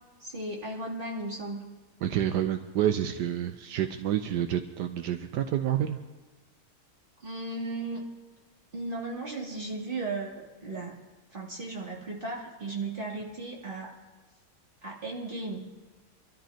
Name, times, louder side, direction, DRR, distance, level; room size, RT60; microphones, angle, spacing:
voice 1, 0.2-1.6 7.2-8.0 8.7-10.9 11.3-13.9 14.8-15.7, right 2 dB, 30° right, -3 dB, 2.9 m, -36 dB
voice 2, 2.0-6.0, right 10 dB, 80° right, 7 dB, 1.3 m, -28 dB
26.5 x 13.0 x 2.9 m, 1.2 s
omnidirectional pair, 1.8 m